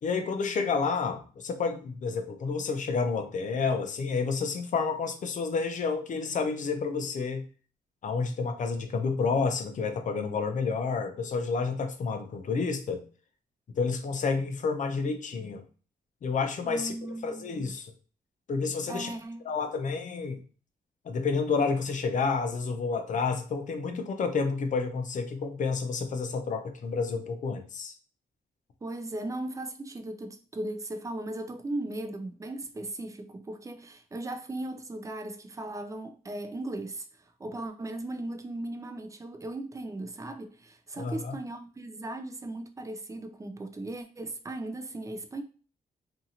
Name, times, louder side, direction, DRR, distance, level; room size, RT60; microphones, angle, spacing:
voice 1, 0.0-7.4 8.0-13.0 13.7-15.6 16.2-16.9 17.2-17.9 18.5-19.1 19.5-20.4 21.1-27.9 41.0-41.3, left 4 dB, 50° left, 0.5 m, -30 dB
voice 2, 16.6-17.8 18.9-19.5 28.8-37.1 37.4-45.4, right 2 dB, 20° right, 0.4 m, -37 dB
2.7 x 2.4 x 2.8 m
cardioid pair, 110°, 16 cm